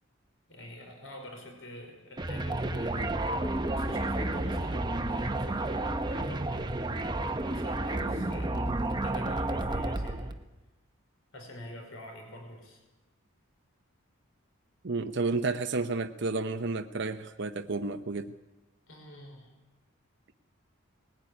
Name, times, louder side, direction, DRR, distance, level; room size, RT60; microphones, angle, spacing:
voice 1, 0.5-3.1 3.8-6.7 7.5-8.6 9.0-10.4 11.3-12.8 18.9-19.5, left 1 dB, 60° left, 3 dB, 5.2 m, -45 dB
sound 1, 2.2-10.4, right 2 dB, 20° right, 0.9 m, -31 dB
voice 2, 14.8-18.3, right 3 dB, 55° right, 6 dB, 0.8 m, -31 dB
20.0 x 16.5 x 9.9 m, 1.1 s
head